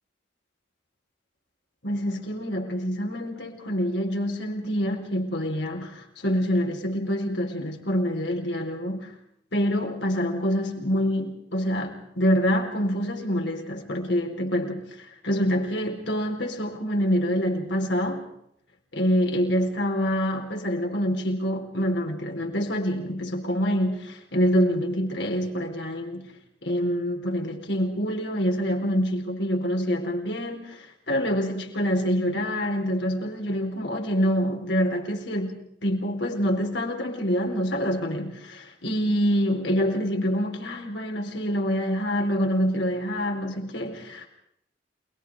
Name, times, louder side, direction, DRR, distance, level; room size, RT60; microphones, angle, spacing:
voice 1, 1.8-9.1 9.5-18.3 18.9-26.3 26.6-44.3, equal, 70° left, 4.3 m, -26 dB
28.0 x 21.0 x 4.8 m
head